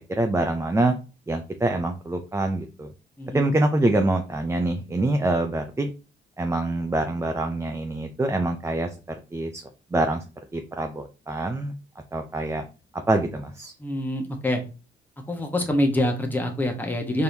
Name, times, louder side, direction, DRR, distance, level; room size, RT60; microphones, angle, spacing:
voice 1, 0.2-0.9 1.3-2.9 3.3-5.9 6.4-8.9 9.3-9.6 9.9-10.2 10.5-11.7 12.1-12.6 13.1-13.7, right 2 dB, 15° right, 5 dB, 0.5 m, -25 dB
voice 2, 3.2-3.5 13.8-14.6 15.3-17.2, left 1 dB, 10° left, 3 dB, 1.1 m, -25 dB
4.4 x 3.5 x 2.7 m, 0.32 s
cardioid pair, 90°, 20 cm